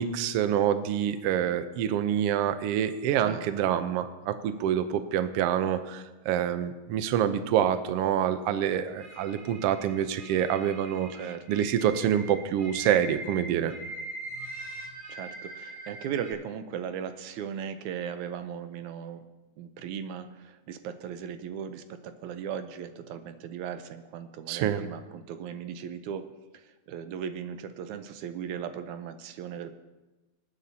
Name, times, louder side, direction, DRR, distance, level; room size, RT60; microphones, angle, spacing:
voice 1, 0.0-11.1 11.5-13.7 24.5-24.8, right 9 dB, 75° right, 10 dB, 1.5 m, -26 dB
sound 1, 9.0-16.3, right 2 dB, 25° right, 5.8 m, -42 dB
voice 2, 11.1-11.4 15.1-19.2 19.6-29.8, right 8 dB, 90° right, 9 dB, 2.2 m, -37 dB
26.0 x 9.2 x 2.8 m, 1.1 s
omnidirectional pair, 3.3 m